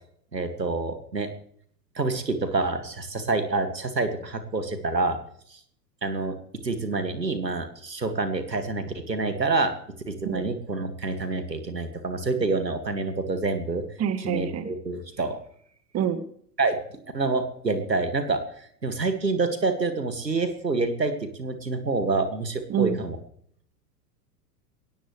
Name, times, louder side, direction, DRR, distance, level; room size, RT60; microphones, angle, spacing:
voice 1, 0.3-1.3 2.0-5.2 5.5-5.6 6.0-6.4 6.6-9.8 10.1-13.8 14.2-15.4 16.6-16.8 17.1-23.2, right 3 dB, 90° right, 8 dB, 2.2 m, -27 dB
voice 2, 14.0-14.7 15.9-16.2 22.7-23.0, right 9 dB, 30° right, 10 dB, 1.9 m, -26 dB
21.0 x 18.5 x 3.2 m, 0.64 s
figure-of-eight pair, 90°, 49 cm